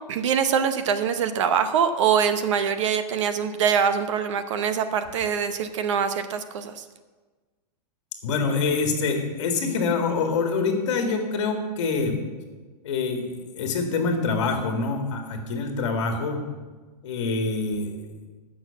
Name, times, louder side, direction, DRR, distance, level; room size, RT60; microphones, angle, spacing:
voice 1, 0.1-6.8, right 7 dB, 45° right, 10 dB, 0.8 m, -24 dB
voice 2, 8.2-12.2 12.8-16.4 17.0-18.0, left 4 dB, 45° left, 4 dB, 2.0 m, -25 dB
15.5 x 6.4 x 7.0 m, 1.3 s
supercardioid pair, 175°, 21 cm